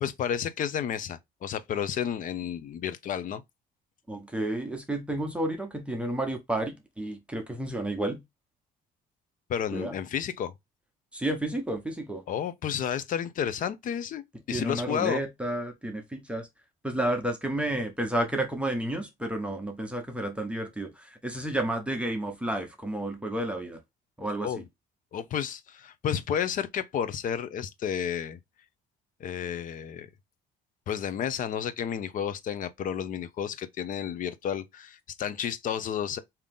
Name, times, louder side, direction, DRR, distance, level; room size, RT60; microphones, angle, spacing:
voice 1, 0.0-3.4 9.5-10.5 12.3-15.2 24.4-24.6 25.1-28.4 29.2-30.1 30.9-36.2, left 8 dB, 50° left, 0.7 m, -31 dB
voice 2, 4.1-8.2 9.7-9.9 11.1-12.2 14.5-16.5 16.8-23.8 24.2-24.5, right 1 dB, 5° right, 0.9 m, -31 dB
3.7 x 2.9 x 3.6 m
cardioid pair, 110°, 17 cm